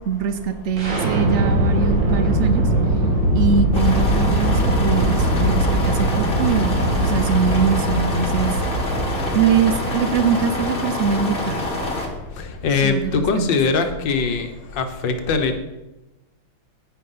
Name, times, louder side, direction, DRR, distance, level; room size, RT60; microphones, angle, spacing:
voice 1, 0.1-2.7 3.3-6.7 7.0-8.6 9.3-11.7 12.8-13.5, right 6 dB, 85° right, 11 dB, 0.6 m, -22 dB
sound 1, 0.8-12.6, right 1 dB, 60° right, 3.2 m, -21 dB
sound 2, 3.7-12.1, left 2 dB, 25° left, 2.1 m, -26 dB
voice 2, 12.6-14.5 14.8-15.6, left 4 dB, 65° left, 6 dB, 1.9 m, -21 dB
11.0 x 9.8 x 5.7 m, 1.0 s
omnidirectional pair, 2.3 m